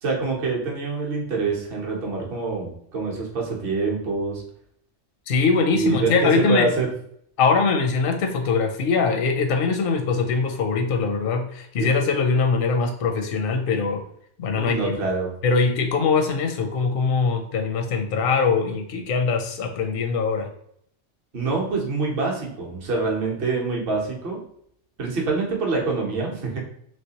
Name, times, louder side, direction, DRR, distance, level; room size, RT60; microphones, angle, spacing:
voice 1, 0.0-4.4 5.7-6.9 11.8-11.9 14.6-15.3 21.3-24.4 25.0-26.6, right 4 dB, 50° right, -1 dB, 1.0 m, -25 dB
voice 2, 5.3-6.7 7.4-14.0 14.4-15.0 15.4-20.5, left 4 dB, 60° left, 4 dB, 0.6 m, -22 dB
3.2 x 3.2 x 2.8 m, 0.68 s
omnidirectional pair, 1.3 m